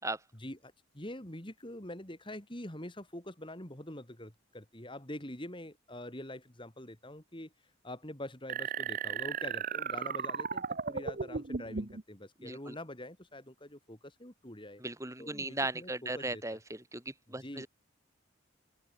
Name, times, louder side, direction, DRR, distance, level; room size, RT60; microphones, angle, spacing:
voice 1, 0.4-14.8 15.2-16.4 17.4-17.7, left 1 dB, 25° left, 3.0 m, -45 dB
sound 1, 8.5-12.0, right 6 dB, 40° right, 0.8 m, -35 dB
voice 2, 12.4-12.8 14.8-17.7, right 2 dB, 15° right, 4.4 m, -37 dB
open air
head